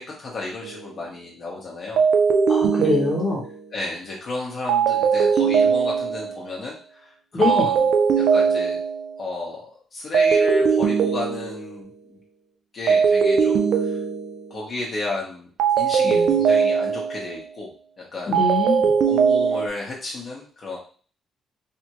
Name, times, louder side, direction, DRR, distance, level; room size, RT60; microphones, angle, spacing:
voice 1, 0.0-2.0 3.7-7.9 8.1-8.8 9.2-12.2 12.7-14.0 14.5-15.5 15.8-18.4 19.0-20.8, left 2 dB, 45° left, -3 dB, 1.1 m, -33 dB
sound 1, 0.6-0.9 2.0-3.7 4.7-6.4 7.4-9.1 10.1-11.8 12.9-14.6 15.6-17.3 18.3-19.7, right 6 dB, 75° right, 0.4 m, -20 dB
voice 2, 2.5-3.4 7.3-7.7 16.0-16.3 18.3-18.9, left 3 dB, 20° left, -3 dB, 1.1 m, -24 dB
3.4 x 2.1 x 3.0 m, 0.41 s
cardioid pair, 90°, 0 cm